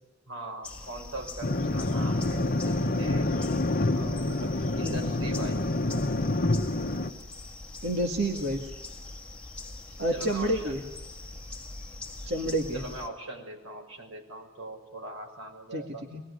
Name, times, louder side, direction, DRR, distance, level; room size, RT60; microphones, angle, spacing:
voice 1, 0.3-3.3 3.9-5.6 10.1-10.8 12.7-16.0, right 2 dB, 75° right, 2 dB, 6.6 m, -41 dB
sound 1, 0.6-13.1, left 2 dB, 5° left, 1.7 m, -43 dB
sound 2, 1.4-7.1, left 2 dB, 45° left, 1.1 m, -27 dB
voice 2, 4.8-5.2 7.8-8.7 10.0-10.8 12.2-12.8 15.7-16.2, right 1 dB, 55° right, 2 dB, 2.0 m, -29 dB
25.0 x 21.0 x 9.8 m, 1.1 s
head